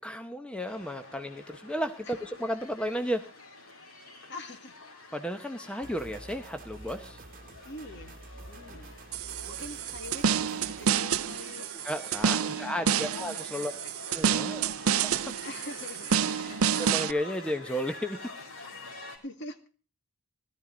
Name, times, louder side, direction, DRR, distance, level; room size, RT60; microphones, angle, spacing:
voice 1, 0.0-3.2 5.1-7.2 11.8-13.7 14.1-15.0 16.8-18.2, equal, 5° left, 6 dB, 0.8 m, -33 dB
sound 1, 0.6-19.2, left 2 dB, 75° left, 4.3 m, -47 dB
voice 2, 4.3-4.8 7.6-9.0 9.4-11.7 12.3-13.0 13.6-14.1 14.4-14.8 15.4-16.8 19.2-19.6, left 2 dB, 50° left, 6 dB, 2.2 m, -45 dB
sound 2, 5.8-10.9, right 2 dB, 40° right, 1.4 m, -48 dB
sound 3, 9.1-17.1, right 7 dB, 75° right, 0.6 m, -29 dB
17.5 x 13.5 x 3.9 m, 0.38 s
head